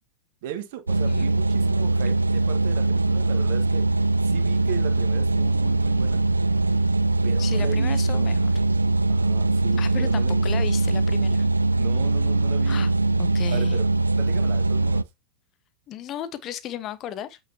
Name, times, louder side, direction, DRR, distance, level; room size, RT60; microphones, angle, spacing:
voice 1, 0.4-3.9 4.2-6.2 7.2-8.4 9.1-10.7 11.8-12.9 13.5-13.8 14.2-15.0, right 11 dB, 50° right, 1.7 m, -36 dB
sound 1, 0.9-15.0, right 2 dB, 80° right, 0.3 m, -22 dB
voice 2, 7.4-8.5 9.8-11.5 12.7-12.9 13.2-13.8 15.9-17.4, left 11 dB, 35° left, 1.1 m, -35 dB
8.4 x 6.4 x 2.8 m
figure-of-eight pair, 90°, 0 cm